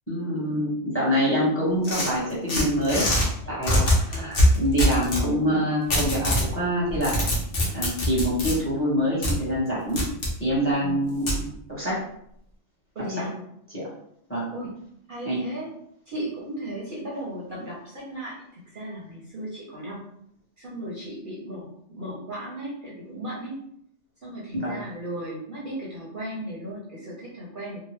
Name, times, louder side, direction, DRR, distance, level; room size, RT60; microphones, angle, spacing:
voice 1, 0.1-3.1 3.5-7.1 7.7-10.0 10.4-12.0 13.7-13.9 14.3-14.5 15.3-15.4 24.5-24.8, equal, 10° left, -6 dB, 1.0 m, -25 dB
sound 1, 1.8-3.3 3.6-5.3 5.9-6.5 6.9-8.5 9.2-9.3 10.0-10.3 11.3-11.4, left 1 dB, 50° left, 1.0 m, -22 dB
voice 2, 10.8-11.1 12.9-13.4 14.5-14.7 15.1-15.7 16.1-20.0 20.6-23.5 24.2-27.8, right 1 dB, 50° right, -6 dB, 0.8 m, -36 dB
2.9 x 2.2 x 3.0 m, 0.72 s
omnidirectional pair, 1.3 m